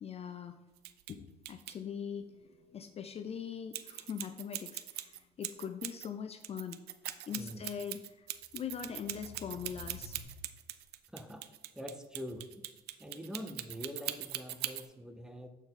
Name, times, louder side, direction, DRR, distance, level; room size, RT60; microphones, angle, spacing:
voice 1, 0.0-0.6 1.1-2.3 2.7-6.8 7.3-8.3 8.5-10.2, left 7 dB, 35° left, 9 dB, 0.4 m, -41 dB
sound 1, 0.8-1.1 1.4-1.7 3.7-6.1 6.4-14.9, right 14 dB, 70° right, 0.4 m, -41 dB
sound 2, 2.1-4.0 5.2-5.3 8.3-10.2, left 3 dB, 60° left, 1.7 m, -54 dB
voice 2, 7.3-7.6 11.1-11.4 11.7-12.6 13.0-15.5, equal, 5° right, 6 dB, 0.6 m, -44 dB
7.7 x 4.5 x 3.7 m, 1.1 s
cardioid pair, 110°, 17 cm